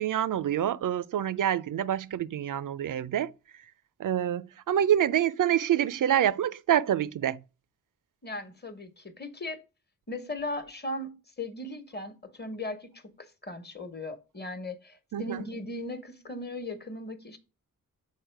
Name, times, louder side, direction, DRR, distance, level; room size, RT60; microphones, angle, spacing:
voice 1, 0.0-3.3 4.0-7.4 15.1-15.4, right 10 dB, 60° right, 0.5 m, -26 dB
voice 2, 8.2-9.6 10.1-13.1 13.4-17.4, left 2 dB, 30° left, 1.2 m, -37 dB
6.4 x 4.3 x 4.6 m
cardioid pair, 50°, 36 cm